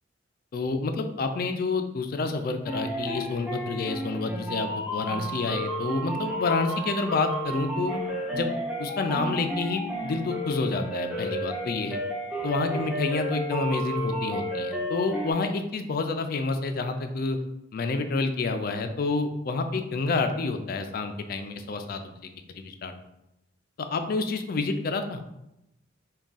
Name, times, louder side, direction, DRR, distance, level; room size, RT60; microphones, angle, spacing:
voice 1, 0.5-8.0 8.3-8.5 8.8-12.0 12.4-17.4 17.7-22.0 22.5-22.9 23.8-25.2, left 3 dB, 45° left, 7 dB, 0.3 m, -28 dB
sound 1, 2.7-15.3, equal, 5° right, 0.7 m, -32 dB
3.5 x 2.3 x 3.9 m, 0.86 s
head